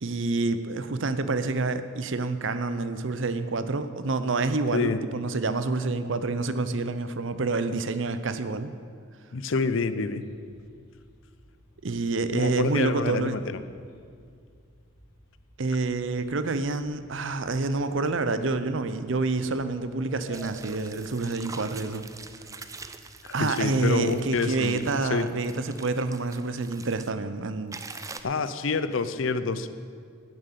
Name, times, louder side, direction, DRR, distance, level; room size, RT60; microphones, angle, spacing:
voice 1, 0.0-8.7 11.8-13.4 15.6-22.1 23.3-27.8, right 3 dB, 60° right, 11 dB, 0.7 m, -28 dB
voice 2, 9.3-10.2 12.3-13.6 23.2-25.3 28.2-29.7, left 4 dB, 65° left, 12 dB, 0.6 m, -27 dB
sound 1, 10.2-25.1, left 1 dB, 50° left, 3.8 m, -53 dB
sound 2, 20.3-27.1 27.7-28.2, right 4 dB, 15° right, 0.5 m, -44 dB
11.5 x 7.7 x 8.2 m, 2.3 s
head